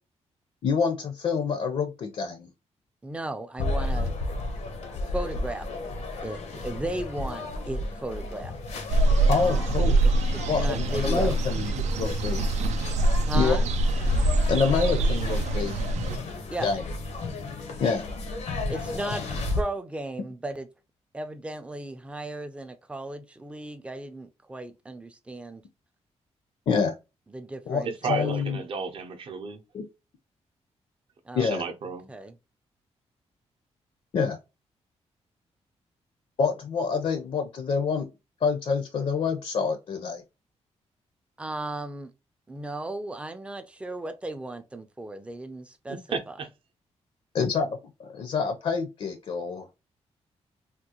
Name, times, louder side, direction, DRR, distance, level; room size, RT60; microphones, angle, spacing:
voice 1, 0.6-2.5 9.3-10.0 10.5-12.4 13.3-13.6 14.5-15.8 16.6-16.9 17.8-18.1 26.7-26.9 27.7-28.6 29.7-29.8 31.3-31.6 34.1-34.4 36.4-38.1 38.4-40.2 47.3-47.8 48.1-49.7, left 5 dB, 55° left, 0.5 m, -27 dB
voice 2, 3.0-4.1 5.1-5.7 6.2-8.5 10.0-11.4 13.3-13.7 16.5-16.7 18.7-20.7 21.1-25.6 27.3-28.3 31.3-31.5 32.1-32.3 41.4-42.1 42.5-46.0 46.3-46.4, right 1 dB, 10° right, 0.3 m, -35 dB
sound 1, 3.6-19.6, left 2 dB, 85° left, 0.7 m, -33 dB
sound 2, 8.9-16.2, right 2 dB, 90° right, 0.4 m, -24 dB
voice 3, 28.0-29.6 31.4-32.1 45.9-46.5, right 5 dB, 50° right, 0.6 m, -33 dB
3.6 x 2.3 x 2.8 m
wide cardioid pair, 160°, 12 cm